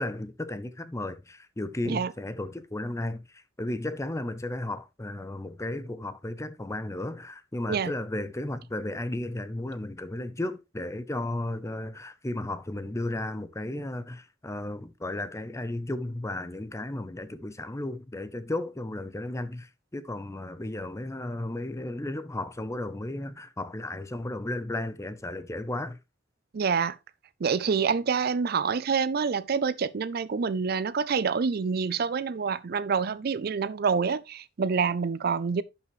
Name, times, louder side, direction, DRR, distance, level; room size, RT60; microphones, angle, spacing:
voice 1, 0.0-26.0, left 1 dB, 15° left, 0.7 m, -34 dB
voice 2, 26.5-27.0 27.4-35.6, right 5 dB, 55° right, 0.5 m, -27 dB
11.0 x 5.6 x 3.1 m
head